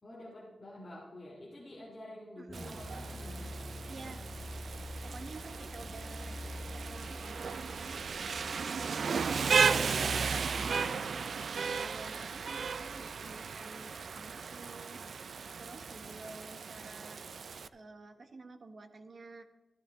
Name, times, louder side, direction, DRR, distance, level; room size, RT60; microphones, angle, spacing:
voice 1, 0.0-3.7, left 1 dB, 25° left, -7 dB, 2.3 m, -49 dB
voice 2, 2.4-2.8 3.9-4.5 5.0-6.4 6.7-8.0 8.3-9.4 10.4-17.3 17.7-19.4, right 3 dB, 50° right, 8 dB, 1.0 m, -51 dB
sound 1, 2.5-9.7, left 1 dB, 10° left, 1.3 m, -46 dB
sound 2, 2.5-10.6, equal, 20° right, 2.4 m, -56 dB
Rain, 2.5-17.7, right 5 dB, 70° right, 0.4 m, -35 dB
13.0 x 12.5 x 3.7 m, 1.3 s
wide cardioid pair, 145°, 0 cm